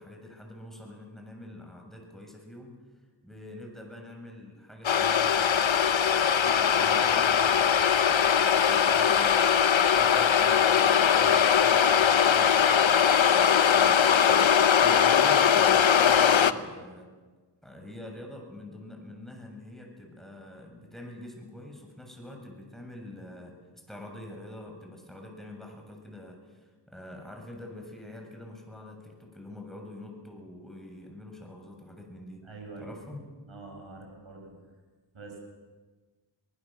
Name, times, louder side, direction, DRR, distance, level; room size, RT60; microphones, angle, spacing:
voice 1, 0.0-2.7 3.2-5.8 6.1-9.6 9.9-17.1 17.6-32.4 32.8-33.2, left 1 dB, ahead, 2 dB, 7.3 m, -45 dB
sound 1, 4.8-16.5, left 8 dB, 75° left, 0.9 m, -21 dB
voice 2, 32.4-32.9 33.5-34.5 35.1-35.4, right 3 dB, 85° right, 0 dB, 6.6 m, -45 dB
24.5 x 19.5 x 7.6 m, 1.4 s
cardioid pair, 40°, 47 cm